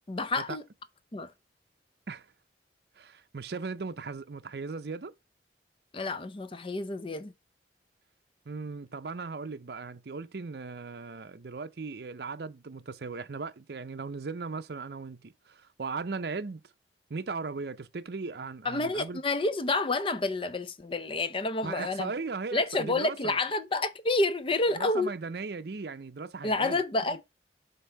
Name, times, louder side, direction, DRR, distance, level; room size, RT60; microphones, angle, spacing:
voice 1, 0.1-0.6 1.1-1.3 5.9-7.3 18.6-22.1 22.5-25.1 26.4-27.3, left 2 dB, 30° left, 0.6 m, -29 dB
voice 2, 3.0-5.1 8.5-16.6 17.1-19.2 21.6-23.4 24.7-26.8, right 4 dB, 60° right, 0.6 m, -37 dB
5.5 x 3.6 x 5.6 m
head